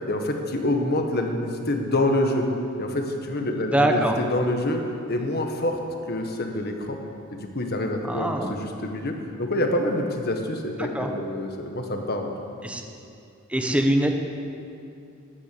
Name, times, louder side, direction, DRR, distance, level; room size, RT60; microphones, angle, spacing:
voice 1, 0.1-2.4 2.8-4.8 5.1-5.8 6.1-7.0 7.3-12.3, left 1 dB, 50° left, 3 dB, 1.6 m, -26 dB
voice 2, 3.7-4.2 8.0-8.5 10.9-11.1 12.6-12.8 13.5-14.1, right 1 dB, 5° right, 3 dB, 1.1 m, -23 dB
13.0 x 11.0 x 8.7 m, 2.6 s
head